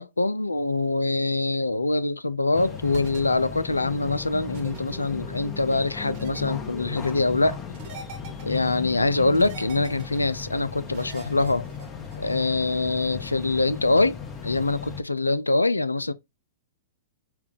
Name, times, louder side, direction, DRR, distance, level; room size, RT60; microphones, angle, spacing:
voice 1, 0.0-7.6 8.4-11.7 12.2-14.2 14.4-16.1, left 2 dB, 80° left, 0.4 m, -24 dB
sound 1, 2.5-15.0, left 6 dB, 20° left, 0.9 m, -36 dB
sound 2, 2.9-3.2 4.5-4.8 6.1-6.4 7.7-8.6 9.3-10.2 10.9-12.2, right 4 dB, 45° right, 1.2 m, -42 dB
5.7 x 2.3 x 3.6 m
figure-of-eight pair, 105°, 0 cm